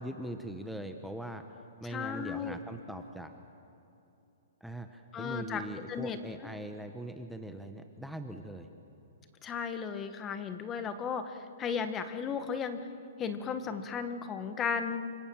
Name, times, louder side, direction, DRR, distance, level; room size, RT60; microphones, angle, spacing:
voice 1, 0.0-3.3 4.6-8.7, right 1 dB, ahead, 5 dB, 1.1 m, -41 dB
voice 2, 1.8-2.6 5.1-5.6 5.9-6.2 9.4-12.8 13.2-15.0, left 6 dB, 20° left, 10 dB, 1.5 m, -35 dB
29.0 x 25.5 x 7.2 m, 2.8 s
hypercardioid pair, 155°, 0 cm